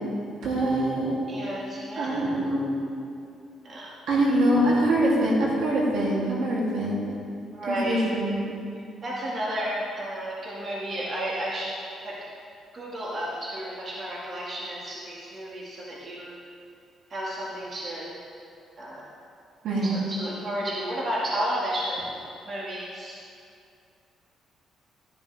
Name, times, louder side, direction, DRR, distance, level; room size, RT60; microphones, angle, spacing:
voice 1, 0.4-1.2 2.0-2.7 4.1-6.9 7.7-8.4 19.6-19.9, right 1 dB, 75° right, -5 dB, 2.9 m, -24 dB
voice 2, 1.3-2.1 3.6-3.9 4.3-4.4 7.5-8.1 9.0-11.8 12.0-12.2 12.7-16.3 17.1-18.1 18.8-19.0 19.8-22.1 22.5-23.2, right 1 dB, 45° right, -5 dB, 2.0 m, -32 dB
13.0 x 11.0 x 3.5 m, 2.4 s
cardioid pair, 90°, 0 cm